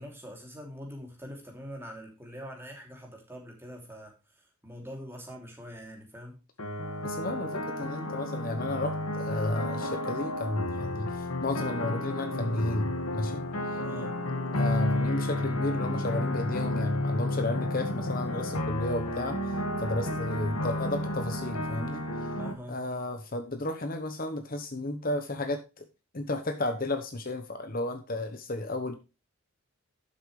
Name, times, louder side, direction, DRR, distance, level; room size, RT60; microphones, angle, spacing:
voice 1, 0.0-4.1 4.6-6.4 13.8-14.2 22.4-22.8, equal, 10° right, 2.8 m, -43 dB
sound 1, 6.6-22.5, left 1 dB, 85° left, 1.8 m, -31 dB
voice 2, 7.0-13.4 14.5-19.4 19.8-22.0 22.7-25.8 26.1-28.9, left 2 dB, 40° left, 1.0 m, -33 dB
12.0 x 7.2 x 3.2 m
head